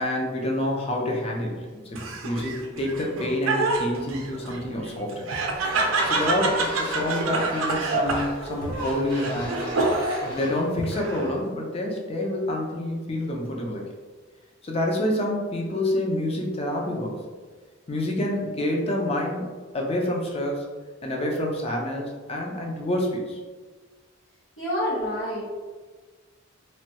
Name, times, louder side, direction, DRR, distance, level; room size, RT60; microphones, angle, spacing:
voice 1, 0.0-5.3 6.0-9.8 10.2-13.8 14.6-17.2 17.9-20.7 21.0-23.4, left 1 dB, 30° left, 0 dB, 0.5 m, -28 dB
Laughter, 1.9-10.4 10.8-11.5, right 3 dB, 90° right, 0.5 m, -27 dB
sound 1, 5.5-11.0, equal, 50° left, 1.5 m, -38 dB
voice 2, 24.6-25.4, equal, 75° left, -11 dB, 1.0 m, -27 dB
3.1 x 2.2 x 2.8 m, 1.4 s
head